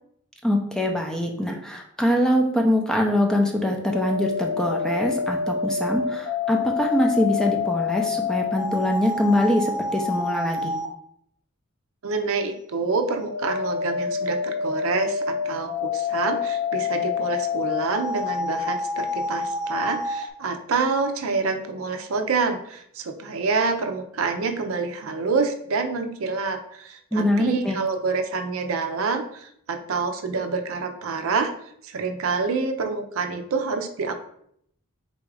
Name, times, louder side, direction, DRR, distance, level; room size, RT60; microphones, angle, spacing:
voice 1, 0.4-10.7 27.1-27.8, left 1 dB, 5° left, 1 dB, 0.5 m, -23 dB
sound 1, 3.6-10.9 13.0-20.3, left 5 dB, 85° left, 0.5 m, -27 dB
voice 2, 12.0-31.5 31.8-34.1, right 4 dB, 70° right, 6 dB, 0.5 m, -27 dB
4.1 x 2.4 x 4.6 m, 0.70 s
head